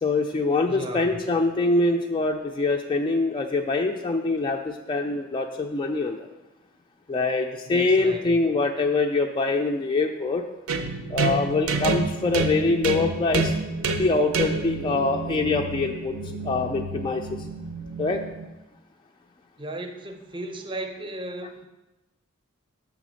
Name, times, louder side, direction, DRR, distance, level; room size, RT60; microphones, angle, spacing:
voice 1, 0.0-6.3 7.1-10.4 11.1-13.5 14.0-16.1 16.4-17.2 18.0-18.2, left 3 dB, 25° left, 2 dB, 0.3 m, -24 dB
voice 2, 0.7-1.2 7.7-8.4 19.6-21.7, right 2 dB, 25° right, 5 dB, 0.6 m, -35 dB
sound 1, 10.7-18.5, right 3 dB, 75° right, 0.6 m, -29 dB
7.3 x 3.4 x 6.2 m, 1.0 s
head